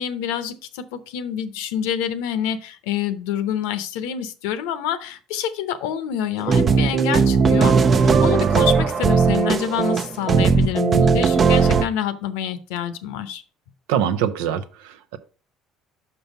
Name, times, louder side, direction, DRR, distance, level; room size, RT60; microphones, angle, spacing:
voice 1, 0.0-13.4, left 9 dB, 80° left, 12 dB, 0.7 m, -27 dB
sound 1, 6.4-11.8, right 5 dB, 40° right, 0.6 m, -17 dB
voice 2, 13.9-15.2, right 9 dB, 80° right, 12 dB, 0.7 m, -24 dB
5.7 x 5.4 x 5.3 m, 0.36 s
hypercardioid pair, 70°, 0 cm